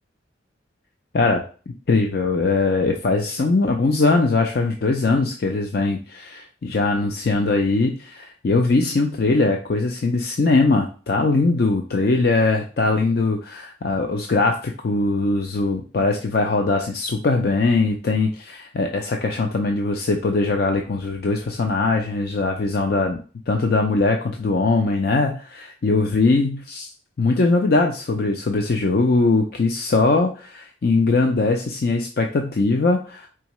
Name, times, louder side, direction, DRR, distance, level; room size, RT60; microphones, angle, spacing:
voice 1, 1.1-23.2 23.5-26.9 27.2-33.3, left 3 dB, 50° left, 3 dB, 0.4 m, -21 dB
4.7 x 3.5 x 3.0 m, 0.38 s
head